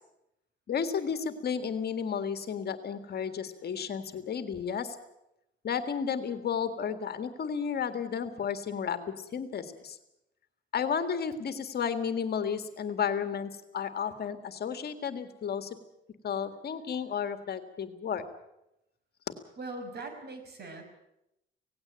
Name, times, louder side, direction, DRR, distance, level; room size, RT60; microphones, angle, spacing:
voice 1, 0.7-5.0 5.6-10.0 10.7-15.8 16.2-18.3, left 7 dB, 50° left, 9 dB, 1.9 m, -32 dB
voice 2, 19.6-20.8, right 2 dB, 50° right, 7 dB, 5.4 m, -40 dB
18.0 x 16.5 x 9.1 m, 0.87 s
cardioid pair, 110°, 21 cm